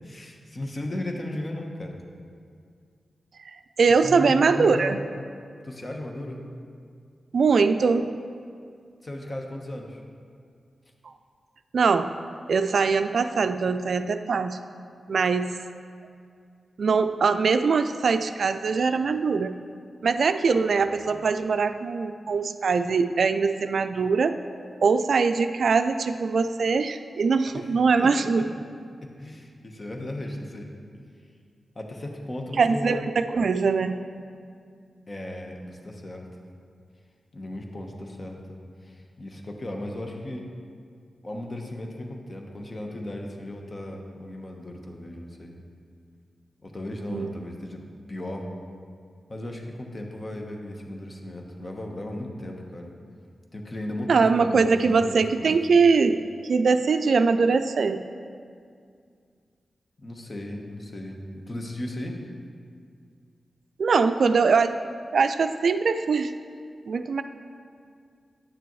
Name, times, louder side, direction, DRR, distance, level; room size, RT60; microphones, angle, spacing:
voice 1, 0.0-2.0 4.0-5.0 5.6-6.5 9.0-10.0 20.5-21.2 27.5-27.7 28.0-28.1 28.4-28.5 29.0-30.7 31.7-33.1 35.1-36.3 37.3-40.5 41.2-45.6 46.6-47.8 48.1-48.5 49.3-52.9 53.5-55.6 60.0-61.2 61.5-62.2, left 1 dB, 40° left, 2 dB, 1.0 m, -36 dB
voice 2, 3.8-5.0 7.3-8.1 11.7-12.1 12.5-14.6 15.1-15.5 16.8-19.5 20.0-24.4 24.8-28.4 32.6-33.9 47.1-47.3 54.1-56.2 56.5-58.0 63.8-64.8 65.1-66.3 66.9-67.2, right 5 dB, 75° right, 9 dB, 0.3 m, -22 dB
9.1 x 6.9 x 3.1 m, 2.2 s
cardioid pair, 45°, 0 cm